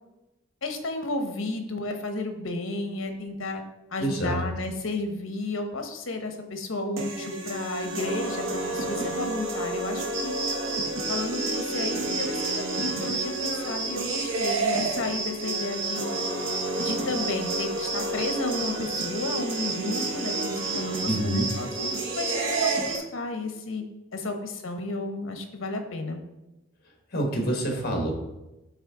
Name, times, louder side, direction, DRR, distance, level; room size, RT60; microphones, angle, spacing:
voice 1, 0.6-3.6 3.9-10.3 11.1-16.1 16.8-23.8 24.1-26.2, left 2 dB, 75° left, 6 dB, 0.9 m, -32 dB
voice 2, 4.0-4.4 21.1-21.5 27.1-28.1, right 1 dB, 50° left, 2 dB, 1.3 m, -27 dB
sound 1, 7.0-23.0, right 2 dB, 75° right, 0.9 m, -31 dB
sound 2, 10.1-23.0, right 4 dB, 60° right, 1.6 m, -33 dB
8.1 x 3.5 x 3.7 m, 1.0 s
head